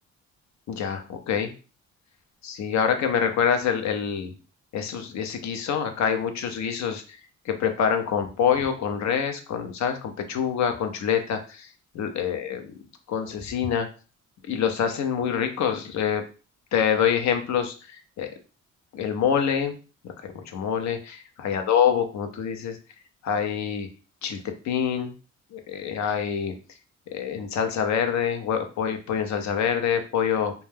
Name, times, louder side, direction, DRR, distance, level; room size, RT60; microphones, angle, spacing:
voice 1, 0.7-1.5 2.4-4.3 4.7-7.0 7.5-11.7 11.9-12.7 13.1-13.9 14.5-16.2 16.7-17.7 18.2-18.3 18.9-19.8 20.2-22.8 23.2-23.9 24.2-25.1 25.5-26.5 27.1-30.5, left 7 dB, 65° left, 7 dB, 0.6 m, -26 dB
2.2 x 2.2 x 3.2 m, 0.35 s
cardioid pair, 90°, 30 cm